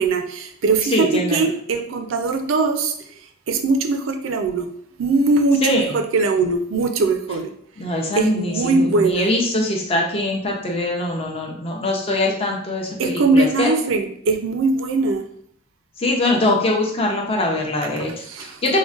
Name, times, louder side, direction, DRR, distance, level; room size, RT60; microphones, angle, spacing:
voice 1, 0.0-2.9 3.5-4.7 5.0-7.5 8.2-9.3 13.0-15.2 18.0-18.5, right 3 dB, 65° right, 6 dB, 0.4 m, -20 dB
voice 2, 0.9-1.4 5.6-6.0 7.8-13.7 16.0-18.1 18.4-18.8, left 1 dB, 30° left, 0 dB, 0.5 m, -22 dB
3.7 x 2.1 x 2.4 m, 0.66 s
head